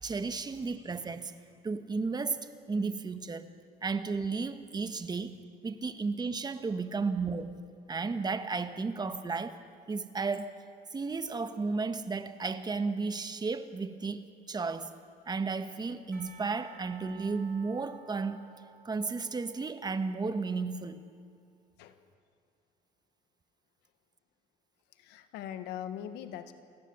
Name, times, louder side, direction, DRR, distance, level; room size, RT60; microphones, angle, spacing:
voice 1, 0.0-1.3 1.6-3.5 3.8-5.4 5.6-7.5 7.9-10.6 10.9-14.9 15.3-18.5 18.8-21.0, right 4 dB, 25° right, 10 dB, 1.3 m, -33 dB
voice 2, 6.7-7.1 21.8-22.0 24.9-26.5, left 10 dB, 90° left, 10 dB, 1.6 m, -42 dB
Percussion / Church bell, 16.1-20.5, right 5 dB, 70° right, 4.0 m, -55 dB
27.5 x 18.0 x 7.1 m, 2.3 s
cardioid pair, 110°, 17 cm